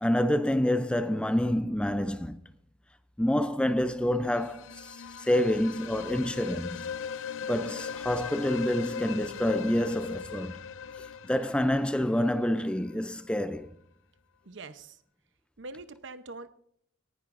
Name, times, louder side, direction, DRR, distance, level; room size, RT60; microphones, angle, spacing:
voice 1, 0.0-2.4 3.2-6.9 7.5-10.6 11.2-13.7, left 1 dB, 5° left, 0.4 m, -27 dB
sound 1, 4.2-13.0, left 7 dB, 85° left, 0.5 m, -39 dB
voice 2, 14.4-15.0 15.6-16.5, right 3 dB, 65° right, 0.8 m, -43 dB
18.5 x 10.5 x 2.6 m
head